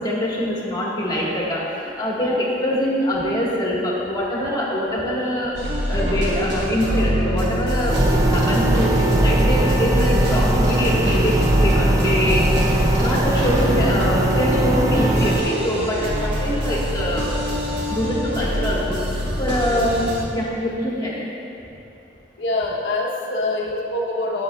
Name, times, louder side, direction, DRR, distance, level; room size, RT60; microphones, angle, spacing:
voice 1, 0.0-5.6 5.9-12.5 13.0-17.3 17.9-21.3 21.6-21.7, equal, 25° left, -5 dB, 1.3 m, -24 dB
sound 1, 5.5-20.3, equal, 75° right, 1.2 m, -24 dB
sound 2, 7.9-15.4, right 1 dB, 20° right, 0.4 m, -20 dB
voice 2, 22.4-24.4, left 2 dB, 80° left, -2 dB, 0.7 m, -24 dB
11.5 x 6.8 x 2.2 m, 2.9 s
head